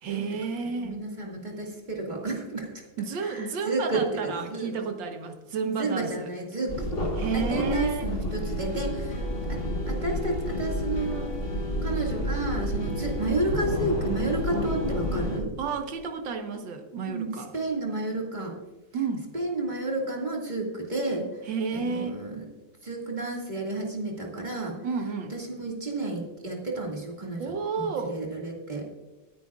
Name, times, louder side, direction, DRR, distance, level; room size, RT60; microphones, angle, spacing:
voice 1, 0.0-1.0 3.0-6.3 7.2-8.1 15.6-17.5 18.9-19.3 21.5-22.2 24.8-25.3 27.4-28.2, right 5 dB, 85° right, 6 dB, 1.9 m, -31 dB
voice 2, 0.8-2.7 3.2-4.7 5.7-6.9 7.3-11.3 11.8-15.5 17.1-18.5 19.3-21.3 21.7-22.5 22.8-24.8 25.3-27.4 27.8-28.9, right 2 dB, 25° right, -2 dB, 2.1 m, -31 dB
sound 1, 6.7-15.4, left 1 dB, 35° left, 1.5 m, -30 dB
23.0 x 9.7 x 2.4 m, 1.2 s
omnidirectional pair, 2.0 m